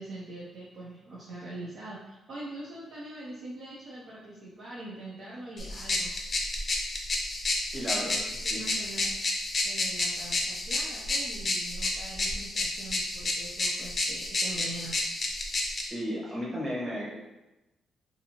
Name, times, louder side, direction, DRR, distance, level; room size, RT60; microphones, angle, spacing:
voice 1, 0.0-6.1 8.0-9.2 9.6-15.0, right 1 dB, 55° right, -5 dB, 0.5 m, -43 dB
sound 1, 5.6-15.9, left 2 dB, 35° left, 0.5 m, -31 dB
voice 2, 7.7-8.1 8.5-8.6 15.9-17.1, equal, 25° right, -6 dB, 1.0 m, -33 dB
2.6 x 2.5 x 2.8 m, 1.0 s
cardioid pair, 120°, 0 cm